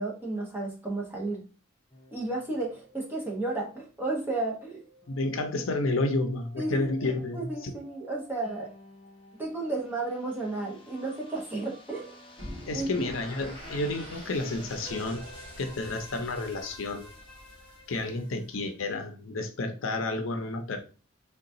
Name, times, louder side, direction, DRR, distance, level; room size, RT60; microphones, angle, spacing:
voice 1, 0.0-1.4 2.1-4.8 6.6-8.7 9.4-12.2 12.7-13.1, right 2 dB, 10° right, -3 dB, 0.8 m, -33 dB
sound 1, 1.9-19.0, left 1 dB, 25° left, 0.6 m, -51 dB
voice 2, 5.1-7.7 12.7-15.2 15.6-17.1 17.9-20.8, left 2 dB, 85° left, 6 dB, 0.6 m, -30 dB
sound 2, 12.4-18.4, equal, 30° right, 1.3 m, -46 dB
3.8 x 2.3 x 2.6 m, 0.34 s
head